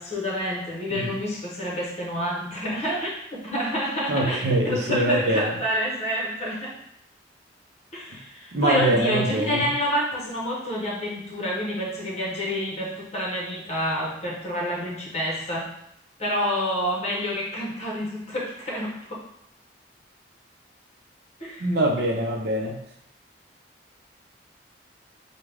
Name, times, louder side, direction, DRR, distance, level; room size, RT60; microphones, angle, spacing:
voice 1, 0.0-6.7 7.9-15.7 16.2-19.2 21.4-21.7, equal, 40° left, -3 dB, 1.0 m, -28 dB
voice 2, 4.1-5.5 8.5-9.7 21.6-22.8, right 1 dB, 65° right, 0 dB, 0.6 m, -24 dB
3.5 x 2.2 x 3.3 m, 0.76 s
head